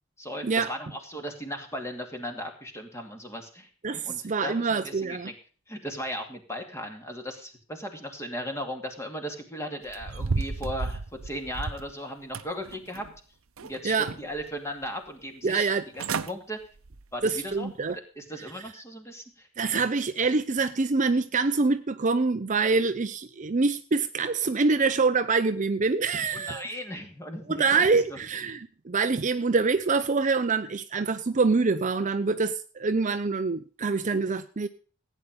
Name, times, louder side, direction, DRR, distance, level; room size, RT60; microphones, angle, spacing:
voice 1, 0.2-3.7 4.0-5.3 5.7-13.0 13.6-16.6 17.1-19.5 26.3-28.2, equal, 15° left, 2.5 m, -37 dB
voice 2, 3.8-5.3 13.8-14.1 15.4-15.8 17.2-18.0 19.6-26.6 27.5-34.7, right 4 dB, 35° right, 0.6 m, -25 dB
sound 1, 9.9-11.9 12.3-13.2 13.6-14.4 14.8-14.9 15.7-15.8 16.0-16.3 16.8-17.0 17.5-17.6, right 4 dB, 75° right, 0.8 m, -33 dB
16.0 x 9.3 x 5.3 m
head